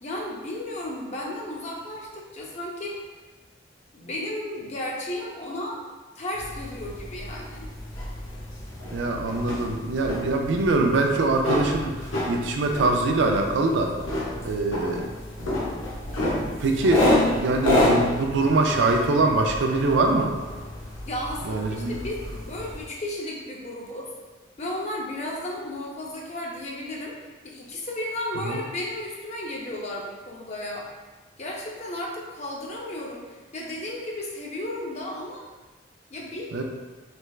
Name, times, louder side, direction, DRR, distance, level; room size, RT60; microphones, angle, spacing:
voice 1, 0.0-3.1 3.9-5.8 6.2-7.7 21.0-24.1 24.6-27.1 27.4-30.9 31.4-35.4 36.1-36.5, left 1 dB, 35° left, -3 dB, 0.5 m, -34 dB
sound 1, 6.3-22.8, left 1 dB, 85° left, 0.9 m, -29 dB
voice 2, 8.9-13.9 14.4-15.0 15.4-15.5 16.4-20.3 21.4-21.9 28.5-28.6 36.5-36.6, right 2 dB, 65° right, 2 dB, 0.4 m, -23 dB
3.3 x 3.2 x 2.3 m, 1.3 s
head